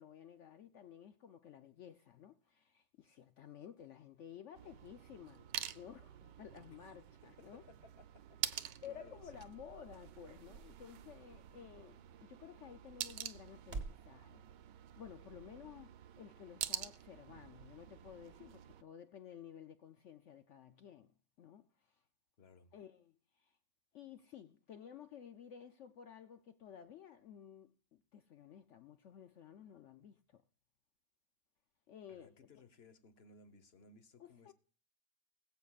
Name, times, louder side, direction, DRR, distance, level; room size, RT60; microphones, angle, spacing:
voice 1, 0.0-7.6 8.8-14.5 15.0-22.0 22.7-23.6 23.9-30.4 31.9-32.3 34.2-34.5, left 9 dB, 80° left, 0.6 m, -54 dB
sound 1, 4.5-18.8, right 11 dB, 75° right, 1.3 m, -47 dB
voice 2, 7.4-8.1 8.8-9.5 22.4-22.7 32.1-34.5, left 3 dB, 40° left, 1.1 m, -61 dB
sound 2, 7.8-14.1, right 4 dB, 40° right, 1.4 m, -53 dB
21.0 x 8.0 x 2.4 m
omnidirectional pair, 1.9 m